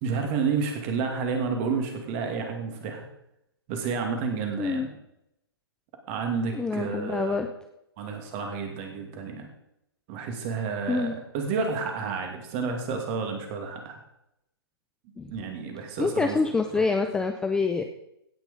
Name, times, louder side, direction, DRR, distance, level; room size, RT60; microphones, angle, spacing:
voice 1, 0.0-3.1 3.7-4.9 6.1-7.4 8.0-9.5 10.1-14.0 15.3-16.4 16.7-16.8, right 5 dB, 30° right, 4 dB, 2.5 m, -30 dB
voice 2, 6.5-7.5 10.9-11.1 15.2-15.3 16.0-17.8, left 4 dB, 5° left, 5 dB, 0.5 m, -26 dB
17.0 x 6.1 x 5.3 m, 0.81 s
figure-of-eight pair, 125°, 13 cm